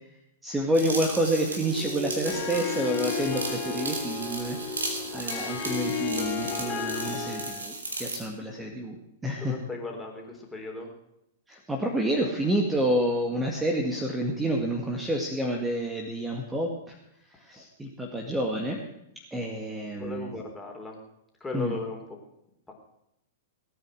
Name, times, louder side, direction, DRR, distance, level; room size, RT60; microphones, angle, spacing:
voice 1, 0.4-4.6 5.1-9.0 9.2-9.6 11.5-17.0 17.3-18.8 19.3-20.3 21.5-21.7, right 1 dB, 10° right, 1 dB, 2.0 m, -29 dB
sound 1, 0.7-8.2, right 2 dB, 85° right, 3.2 m, -36 dB
sound 2, 1.3-7.1, right 1 dB, 45° right, 3.8 m, -41 dB
Harp, 2.2-7.7, left 6 dB, 40° left, 3.4 m, -33 dB
voice 2, 9.4-10.9 19.9-21.0 21.4-22.0 22.7-22.8, left 3 dB, 10° left, 1 dB, 3.7 m, -36 dB
18.5 x 9.3 x 6.4 m, 0.82 s
hypercardioid pair, 105°, 0 cm